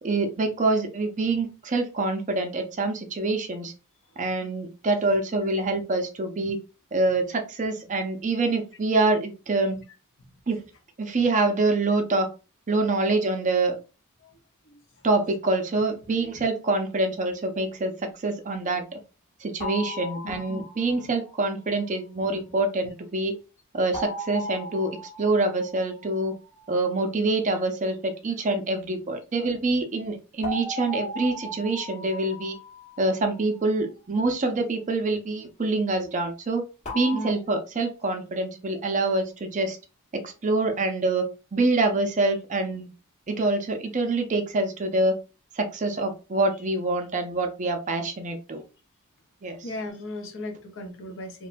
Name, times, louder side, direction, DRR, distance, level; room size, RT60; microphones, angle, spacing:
voice 1, 0.0-3.7 4.2-6.6 6.9-9.8 10.5-10.6 11.0-12.3 12.7-13.8 15.0-19.0 19.4-23.3 23.7-26.3 26.7-32.6 33.0-36.6 36.9-39.8 40.1-42.9 43.3-45.2 45.5-48.6 49.4-49.6, right 2 dB, 35° right, 6 dB, 0.5 m, -26 dB
voice 2, 14.6-15.1 20.2-20.6 37.1-37.4 49.5-51.5, left 1 dB, 60° left, 3 dB, 0.7 m, -37 dB
sound 1, 19.6-21.1 23.9-26.4 30.4-33.6 36.9-37.3, equal, 30° left, 1.0 m, -37 dB
3.0 x 2.2 x 2.5 m, 0.31 s
head